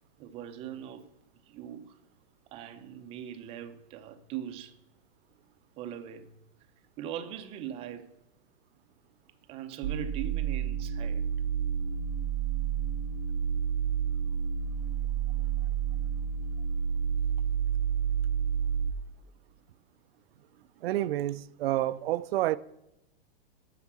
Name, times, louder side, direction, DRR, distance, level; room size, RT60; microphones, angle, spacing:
voice 1, 0.2-1.1 1.4-2.0 2.5-4.8 5.8-6.3 7.0-8.1 9.5-11.2, right 10 dB, 20° right, 0.6 m, -40 dB
sound 1, 9.8-18.9, right 8 dB, 90° right, 0.9 m, -30 dB
voice 2, 20.8-22.6, right 14 dB, 70° right, 0.5 m, -29 dB
8.3 x 6.4 x 6.0 m
supercardioid pair, 155°, 31 cm